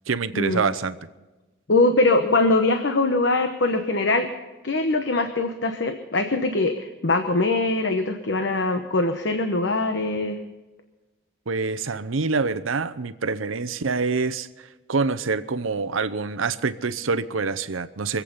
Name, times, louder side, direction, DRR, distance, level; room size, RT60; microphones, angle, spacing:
voice 1, 0.1-1.0 11.5-18.2, right 4 dB, 85° right, 12 dB, 0.8 m, -26 dB
voice 2, 1.7-4.3 4.6-10.4, left 2 dB, 60° left, 6 dB, 1.0 m, -22 dB
24.5 x 8.5 x 5.6 m, 1.1 s
head